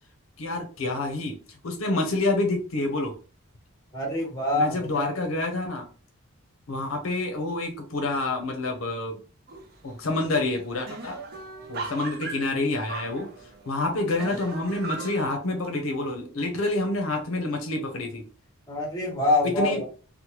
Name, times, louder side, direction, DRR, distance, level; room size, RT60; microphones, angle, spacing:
voice 1, 0.4-3.1 4.5-5.9 6.7-9.2 9.8-11.2 11.7-13.3 13.7-18.2 19.4-19.8, left 2 dB, 70° left, 4 dB, 0.6 m, -28 dB
voice 2, 3.9-5.0 18.7-19.8, left 2 dB, 20° left, -1 dB, 0.9 m, -25 dB
sound 1, 9.5-9.9 10.2-10.3 10.6-13.7 14.2-15.3, right 4 dB, 45° right, 0.5 m, -37 dB
2.9 x 2.1 x 2.9 m, 0.37 s
head